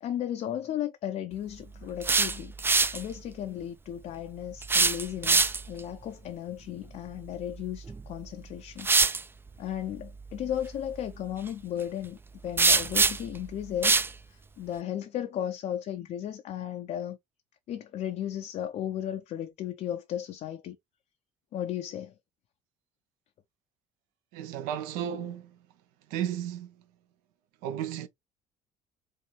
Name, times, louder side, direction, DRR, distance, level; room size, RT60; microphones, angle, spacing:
voice 1, 0.0-2.5 2.9-8.9 9.6-12.2 12.4-14.0 14.3-17.2 17.7-20.8 21.5-22.1, left 10 dB, 45° left, 0.5 m, -35 dB
sound 1, 1.8-3.0 4.6-5.8 7.9-8.0 8.8-9.2 12.6-13.4 13.8-14.1, right 4 dB, 15° right, 0.4 m, -23 dB
voice 2, 24.3-25.5 26.1-26.7 27.6-28.1, right 10 dB, 65° right, 0.6 m, -33 dB
4.3 x 2.6 x 3.1 m
figure-of-eight pair, 55°, 16 cm